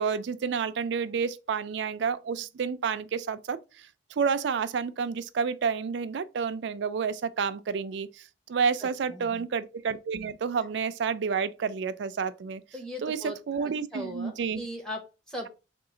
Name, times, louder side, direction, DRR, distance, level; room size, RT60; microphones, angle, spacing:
voice 1, 0.0-12.6 13.0-14.6, right 6 dB, 70° right, 0.4 m, -30 dB
voice 2, 8.8-9.5 12.7-15.5, equal, 5° left, 0.8 m, -39 dB
3.7 x 2.4 x 3.7 m
head